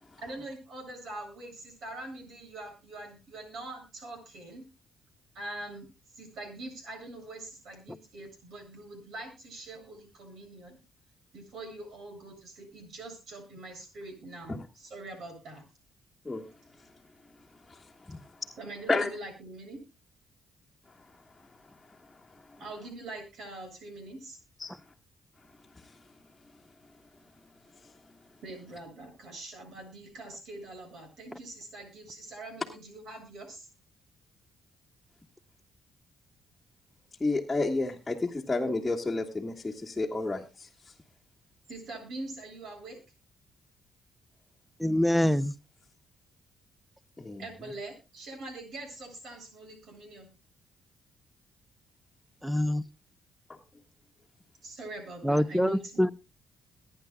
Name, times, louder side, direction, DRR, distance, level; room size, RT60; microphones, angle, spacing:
voice 1, 0.2-4.6 5.3-5.9 6.1-10.8 11.3-15.6 18.6-19.8 22.6-24.4 28.4-33.7 41.7-43.0 47.4-50.3 54.6-56.1, right 2 dB, 70° right, 7.8 m, -43 dB
voice 2, 37.2-40.7 47.2-47.4, left 3 dB, 15° left, 1.6 m, -30 dB
voice 3, 44.8-45.5 52.4-52.8 55.2-56.1, equal, ahead, 0.8 m, -25 dB
22.5 x 10.0 x 2.3 m
cardioid pair, 90°, 0 cm